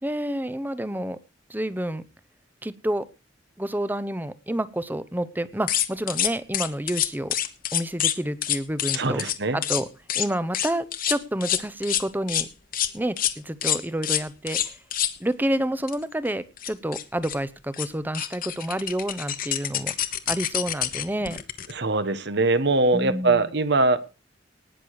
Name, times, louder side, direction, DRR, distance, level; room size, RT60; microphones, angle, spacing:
voice 1, 0.0-1.2 1.5-2.0 2.6-3.1 3.6-7.3 7.7-9.2 9.5-9.9 10.1-12.5 12.9-14.8 15.2-19.9 20.3-21.4 22.9-23.5, right 1 dB, 10° right, 15 dB, 0.8 m, -29 dB
sound 1, 5.7-8.2 8.4-9.4 9.6-9.8 10.1-10.3 10.5-12.5 12.7-12.9 13.2-13.3 13.6-15.1 15.9-16.0 16.3-16.4 16.6-17.4 17.7-17.9 18.1-21.7, left 11 dB, 50° left, 1.1 m, -26 dB
voice 2, 8.9-9.6 21.7-24.0, right 3 dB, 65° right, 12 dB, 1.3 m, -22 dB
19.0 x 6.8 x 4.7 m, 0.30 s
head